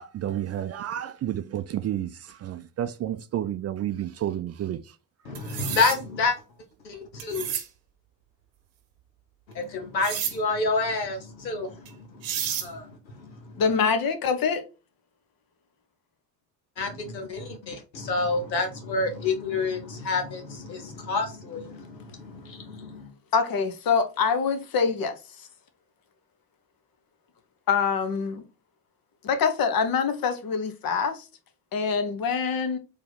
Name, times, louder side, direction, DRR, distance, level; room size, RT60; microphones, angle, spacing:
voice 1, 0.0-4.8, right 11 dB, 35° right, 0.4 m, -31 dB
voice 2, 5.2-6.4 6.8-7.5 9.5-13.5 16.8-23.1, left 3 dB, 90° left, 0.9 m, -29 dB
sound 1, 5.4-6.0 7.2-7.7 10.0-10.4 11.9-12.0 12.2-12.7, right 9 dB, 80° right, 0.9 m, -30 dB
voice 3, 13.6-14.6 23.3-25.2 27.7-28.4 29.2-31.2 31.7-32.8, left 5 dB, 45° left, 1.1 m, -25 dB
4.2 x 2.8 x 4.0 m
figure-of-eight pair, 50°, 49 cm